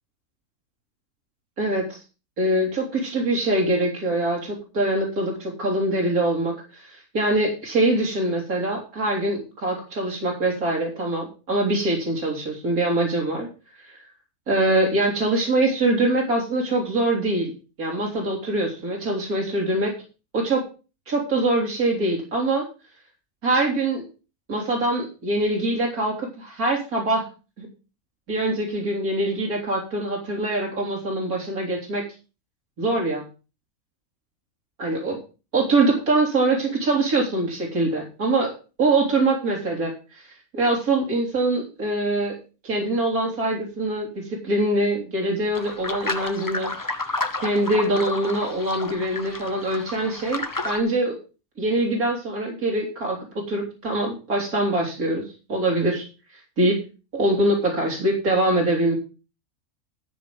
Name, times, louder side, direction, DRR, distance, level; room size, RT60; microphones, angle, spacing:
voice 1, 1.6-2.0 2.4-13.5 13.8-14.0 14.5-17.5 17.8-19.9 20.3-20.6 21.1-22.7 23.4-24.0 24.5-27.3 27.6-27.7 28.3-32.0 32.8-33.2 34.8-35.2 35.5-38.5 38.8-42.4 42.6-46.7 47.4-51.2 51.6-55.2 55.5-56.0 56.6-56.8 57.1-58.9, right 2 dB, 80° right, -2 dB, 3.9 m, -23 dB
sound 1, 45.5-50.8, left 2 dB, 15° left, 1.0 m, -31 dB
13.0 x 5.4 x 7.6 m, 0.33 s
omnidirectional pair, 1.5 m